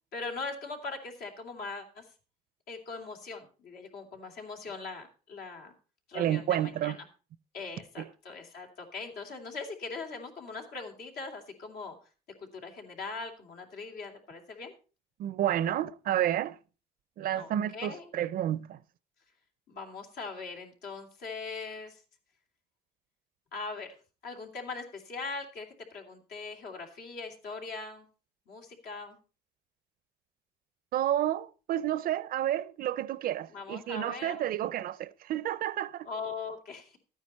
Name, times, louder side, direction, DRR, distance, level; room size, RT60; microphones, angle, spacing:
voice 1, 0.1-2.1 2.7-5.7 6.1-7.1 7.5-12.0 12.4-14.7 17.3-18.1 19.7-22.0 23.5-23.9 24.2-28.1 28.5-29.2 33.5-34.4 36.0-37.0, left 4 dB, 70° left, 2.7 m, -41 dB
voice 2, 6.1-7.0 8.0-8.1 15.2-16.6 17.2-18.8 30.9-36.1, right 12 dB, 60° right, 0.5 m, -30 dB
13.0 x 9.4 x 4.2 m
cardioid pair, 110°, 17 cm